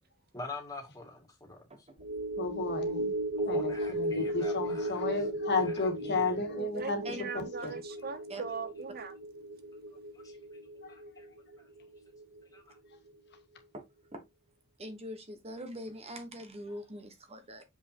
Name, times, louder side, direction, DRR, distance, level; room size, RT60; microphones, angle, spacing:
voice 1, 0.3-1.9 3.4-5.1 5.6-6.3 9.0-9.1 10.1-10.4 10.9-11.2 11.5-11.6 12.5-12.8, left 3 dB, 15° left, 2.4 m, -46 dB
voice 2, 1.7-2.1 7.0-7.2 8.3-8.4 13.7-13.8 14.1-14.2 14.8-17.6, equal, 30° right, 1.3 m, -43 dB
sound 1, 2.0-12.6 12.9-13.1, right 1 dB, 70° right, 1.3 m, -36 dB
voice 3, 2.4-3.1 3.5-7.8 10.8-10.9, left 3 dB, 50° left, 1.9 m, -33 dB
voice 4, 6.6-9.1, right 5 dB, 45° right, 0.8 m, -40 dB
7.3 x 5.5 x 3.0 m
head